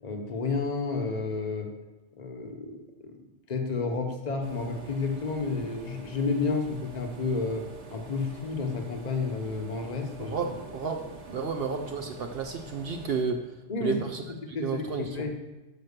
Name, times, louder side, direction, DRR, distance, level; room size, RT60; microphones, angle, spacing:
voice 1, 0.0-1.7 2.2-2.8 3.0-3.1 3.5-7.6 7.9-10.3 13.7-14.0 14.5-15.3, left 4 dB, 40° left, 4 dB, 1.1 m, -31 dB
sound 1, 4.4-13.2, right 2 dB, 35° right, 1.0 m, -46 dB
voice 2, 10.2-13.4 13.8-14.2 14.5-15.3, right 5 dB, 60° right, 4 dB, 0.9 m, -32 dB
6.9 x 5.9 x 6.6 m, 1.1 s
omnidirectional pair, 1.2 m